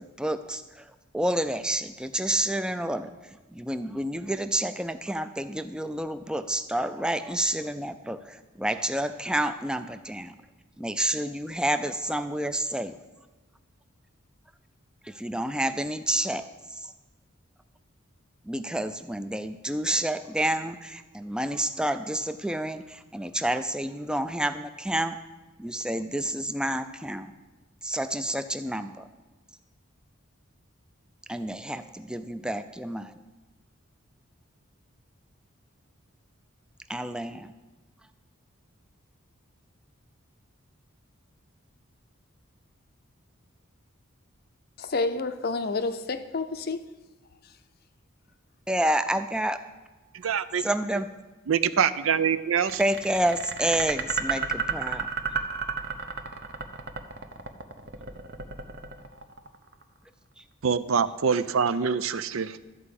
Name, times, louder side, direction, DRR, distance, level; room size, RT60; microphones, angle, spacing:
voice 1, 0.0-10.3 10.8-12.9 15.0-16.9 18.4-25.2 25.6-27.3 27.8-29.0 31.3-33.1 36.9-37.5 48.7-49.6 50.6-51.1 52.8-55.1 60.4-60.5, right 1 dB, 5° right, 0.4 m, -29 dB
voice 2, 44.8-46.8, left 3 dB, 45° left, 0.6 m, -29 dB
voice 3, 50.1-50.6 51.5-52.8 60.6-62.6, right 7 dB, 75° right, 0.5 m, -25 dB
sound 1, 52.7-59.8, right 5 dB, 50° right, 0.8 m, -32 dB
13.0 x 4.8 x 8.4 m
head